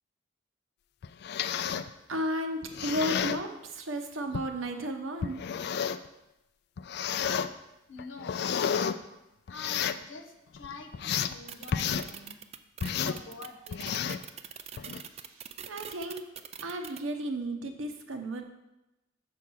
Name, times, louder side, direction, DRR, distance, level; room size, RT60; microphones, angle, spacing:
sound 1, 1.0-1.9 2.6-3.4 4.3-4.5 5.2-6.1 6.8-7.5 8.0-8.9 9.5-10.0 10.5-11.3 11.7-12.1 12.8-13.2 13.7-14.2 14.8-15.0, left 7 dB, 55° left, 0.3 m, -31 dB
voice 1, 2.1-5.4 15.3-16.2 16.6-18.4, right 1 dB, 85° right, 4 dB, 1.0 m, -34 dB
voice 2, 7.9-8.4 9.5-12.4 12.9-14.2, left 4 dB, 75° left, 4 dB, 0.9 m, -47 dB
sound 2, 11.5-17.0, right 8 dB, 30° right, 0.3 m, -42 dB
7.0 x 4.8 x 6.2 m, 0.95 s
head